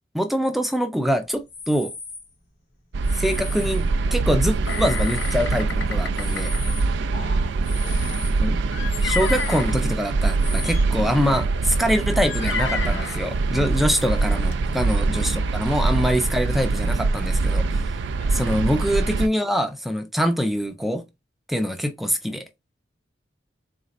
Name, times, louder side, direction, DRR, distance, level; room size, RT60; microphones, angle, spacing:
voice 1, 0.1-1.9 3.1-3.9 4.1-6.5 8.4-8.6 9.0-17.7 18.3-21.0 21.5-22.4, equal, ahead, 0.4 m, -24 dB
sound 1, 1.4-2.3 3.0-4.1 4.5-7.0 7.3-10.7, left 4 dB, 60° left, 1.2 m, -38 dB
sound 2, 2.9-19.3, right 3 dB, 70° right, 0.4 m, -23 dB
sound 3, 4.7-6.6 7.9-9.7 10.6-10.8 11.3-11.5 12.2-13.2 14.0-14.1 14.4-14.6, left 5 dB, 80° left, 0.7 m, -31 dB
voice 2, 7.1-8.0 14.1-14.3 15.1-15.3 18.2-18.4, equal, 40° left, 0.8 m, -42 dB
4.0 x 2.5 x 4.0 m
head